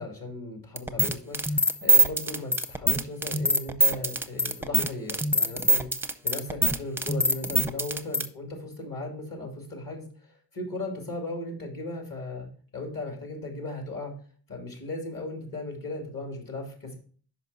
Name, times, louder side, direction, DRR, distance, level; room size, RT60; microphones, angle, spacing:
voice 1, 0.0-12.5 12.7-14.1 14.5-17.0, left 2 dB, 50° left, 2 dB, 2.5 m, -37 dB
sound 1, 0.8-8.3, right 2 dB, 5° right, 0.6 m, -23 dB
5.7 x 5.1 x 4.1 m, 0.44 s
cardioid pair, 60°, 42 cm